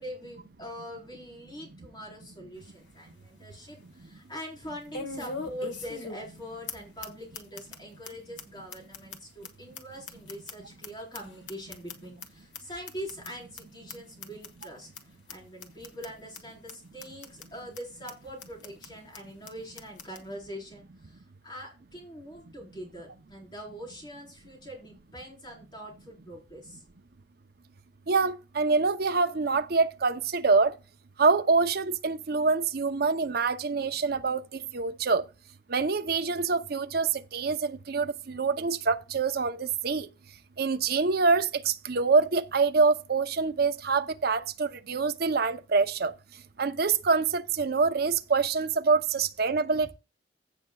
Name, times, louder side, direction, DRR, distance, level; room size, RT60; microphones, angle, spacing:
voice 1, 0.0-14.9 15.3-26.8, equal, 25° left, 4.6 m, -43 dB
sound 1, 2.6-2.7 3.1-3.2 4.9-6.4 6.7-6.8 7.0-7.1 7.3-7.8 8.0-8.1 8.4-8.5 8.7-10.9 11.1-12.3 12.5-12.6 12.9-13.3 13.6-13.7 13.9-14.0 14.2-14.7 15.0-15.1 15.3-15.4 15.6-16.1 16.3-16.4 16.7-16.8 17.0-17.5 17.8-17.9 18.1-18.2 18.4-18.9 19.1-19.2 19.5-19.6 19.8-20.2, left 4 dB, 85° left, 1.5 m, -40 dB
voice 2, 28.1-30.7 31.2-35.2 35.7-40.1 40.6-46.1 46.6-49.9, right 4 dB, 60° right, 0.7 m, -25 dB
16.0 x 6.7 x 2.3 m
head